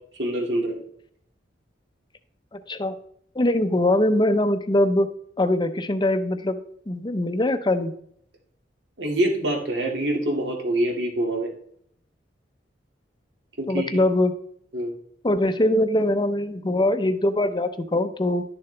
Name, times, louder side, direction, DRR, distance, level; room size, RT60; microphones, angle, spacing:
voice 1, 0.2-0.8 9.0-11.5 13.6-14.0 14.7-14.9, right 1 dB, 75° right, 1 dB, 2.2 m, -25 dB
voice 2, 2.5-3.0 3.3-5.1 5.4-6.6 6.9-7.9 13.7-14.3 15.2-18.4, left 1 dB, 25° left, 9 dB, 0.7 m, -22 dB
11.5 x 6.8 x 3.3 m, 0.68 s
head